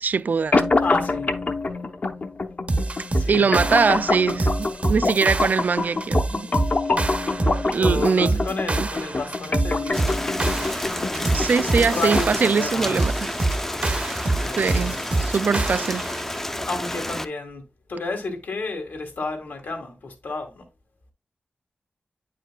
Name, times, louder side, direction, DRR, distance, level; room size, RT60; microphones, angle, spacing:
voice 1, 0.0-0.7 3.3-6.5 7.6-8.4 11.3-13.3 14.6-16.1, right 5 dB, 60° right, 0.3 m, -22 dB
sound 1, 0.5-12.5, left 3 dB, 50° left, 0.7 m, -26 dB
voice 2, 0.8-1.3 3.1-3.7 7.7-10.4 10.9-13.0 14.4-15.0 16.7-20.6, left 3 dB, 80° left, 1.7 m, -32 dB
sound 2, 2.7-16.2, right 2 dB, 40° right, 0.7 m, -26 dB
Rain, 9.9-17.2, left 1 dB, 10° left, 0.5 m, -30 dB
8.9 x 4.9 x 2.2 m
wide cardioid pair, 70°, 3 cm